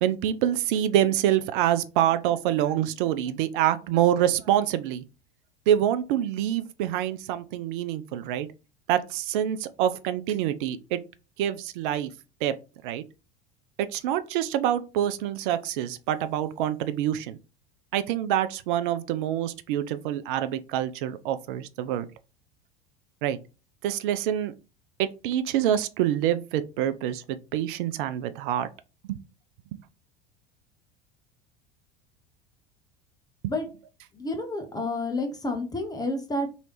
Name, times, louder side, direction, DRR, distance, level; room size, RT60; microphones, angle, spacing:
voice 1, 0.0-5.0 5.7-8.5 8.9-11.0 11.4-12.1 12.4-12.5 12.8-13.0 13.8-17.4 17.9-22.1 23.2-23.4 23.8-24.5 25.0-28.7 29.1-29.2 33.4-33.5, right 11 dB, 60° right, 0.5 m, -26 dB
voice 2, 34.1-36.5, left 2 dB, 15° left, 0.7 m, -30 dB
3.1 x 2.8 x 3.0 m
figure-of-eight pair, 75°, 30 cm